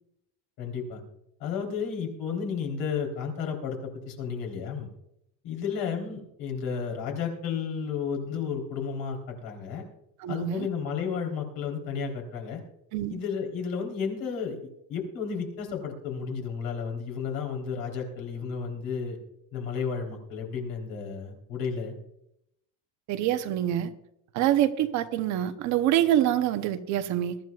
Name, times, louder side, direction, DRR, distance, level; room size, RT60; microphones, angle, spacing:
voice 1, 0.6-1.0 1.4-4.9 5.4-9.8 10.3-12.6 13.1-14.6 14.9-19.2 19.5-21.9, left 6 dB, 65° left, 2 dB, 3.8 m, -32 dB
voice 2, 10.2-10.7 12.9-13.2 23.1-23.9 24.3-27.4, right 12 dB, 45° right, 9 dB, 0.8 m, -25 dB
22.0 x 13.0 x 2.4 m, 0.80 s
cardioid pair, 170°, 38 cm